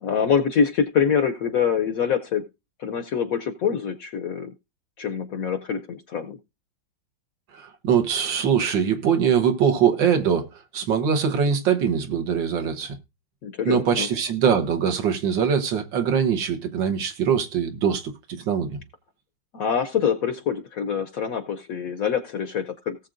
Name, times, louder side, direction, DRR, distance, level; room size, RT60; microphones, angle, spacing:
voice 1, 0.0-2.5 2.8-4.5 5.0-6.4 13.4-14.1 19.5-23.0, left 7 dB, 65° left, 0.9 m, -25 dB
voice 2, 7.5-10.5 10.7-13.0 13.7-18.1 18.4-18.8, right 7 dB, 75° right, 1.9 m, -22 dB
18.0 x 7.4 x 2.5 m
omnidirectional pair, 2.0 m